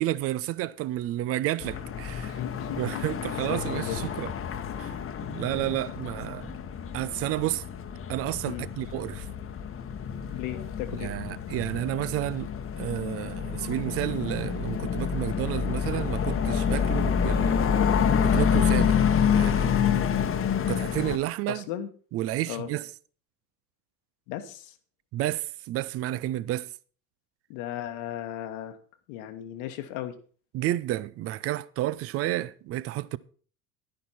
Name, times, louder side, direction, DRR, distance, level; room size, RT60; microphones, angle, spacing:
voice 1, 0.0-2.4 2.8-4.3 4.8-5.0 5.3-6.6 6.9-7.6 8.1-9.3 11.0-17.7 18.2-19.0 19.3-19.7 20.7-21.6 22.1-22.9 25.1-26.7 30.5-33.2, right 15 dB, 30° right, 0.5 m, -31 dB
sound 1, 1.6-21.2, left 7 dB, 30° left, 1.1 m, -28 dB
voice 2, 2.2-3.1 3.5-4.0 8.4-8.7 10.3-11.1 16.7-16.9 21.5-21.9 22.5-22.7 24.3-24.7 27.5-28.8 29.1-30.2, left 12 dB, 55° left, 1.3 m, -36 dB
10.5 x 10.5 x 4.2 m
figure-of-eight pair, 70°, 46 cm